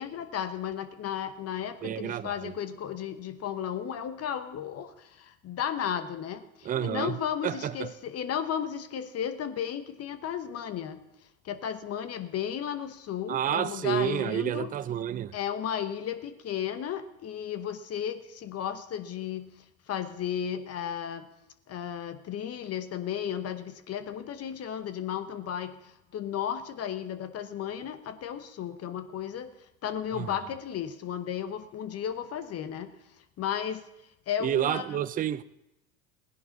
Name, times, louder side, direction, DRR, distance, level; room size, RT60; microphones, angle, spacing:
voice 1, 0.0-11.0 11.4-14.7 15.3-19.5 19.9-21.3 21.7-29.5 29.8-32.9 33.4-33.8 34.3-35.0, left 9 dB, 35° left, 1.0 m, -34 dB
voice 2, 1.8-2.5 6.6-7.2 7.4-7.9 13.3-15.3 30.1-30.3 34.4-35.4, right 10 dB, 20° right, 0.4 m, -29 dB
17.5 x 10.5 x 4.0 m
hypercardioid pair, 90°, 41 cm